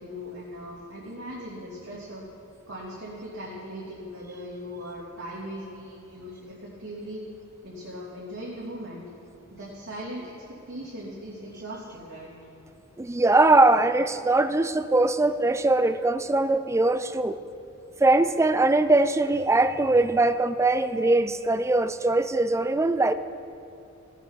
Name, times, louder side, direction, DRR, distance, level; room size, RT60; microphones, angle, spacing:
voice 1, 0.0-2.2 2.7-7.2 7.6-9.0 9.5-10.3 10.7-12.3, equal, 70° right, -9 dB, 3.1 m, -39 dB
voice 2, 13.0-17.4 18.0-23.1, right 2 dB, 15° right, 12 dB, 0.4 m, -21 dB
17.0 x 8.3 x 5.8 m, 2.7 s
head